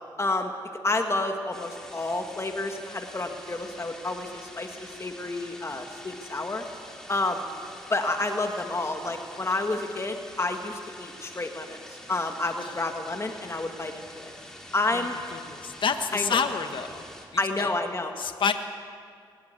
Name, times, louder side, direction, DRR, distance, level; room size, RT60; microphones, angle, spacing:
voice 1, 0.2-0.5 0.8-6.6 7.1-7.5 7.9-11.8 12.1-14.3 14.7-15.2 16.1-16.4 17.4-18.1, left 2 dB, 30° left, 4 dB, 1.9 m, -29 dB
sound 1, 1.5-17.3, left 1 dB, 5° left, 4.3 m, -46 dB
voice 2, 15.3-17.0 17.3-17.7 18.2-18.5, left 6 dB, 65° left, 7 dB, 1.4 m, -28 dB
21.5 x 19.0 x 8.3 m, 2.2 s
cardioid pair, 75°, 9 cm